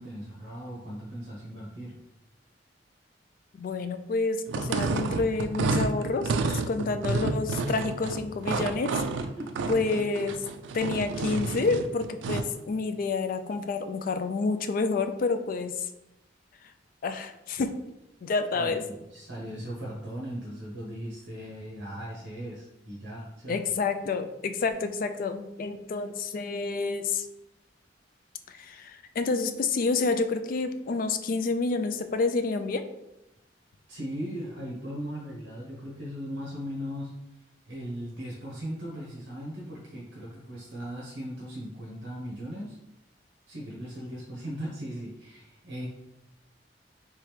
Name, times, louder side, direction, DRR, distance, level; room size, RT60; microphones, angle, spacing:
voice 1, 0.0-2.0 9.2-9.7 18.5-23.6 33.9-37.1 37.4-42.8 43.5-45.9, equal, 70° right, -4 dB, 0.8 m, -38 dB
voice 2, 3.6-9.0 9.7-10.4 10.7-15.9 17.0-17.7 18.2-18.8 23.5-27.2 28.5-32.8, left 4 dB, 50° left, 9 dB, 0.3 m, -29 dB
sound 1, 4.5-12.6, right 4 dB, 85° right, 0.3 m, -30 dB
3.4 x 3.1 x 3.2 m, 0.89 s
head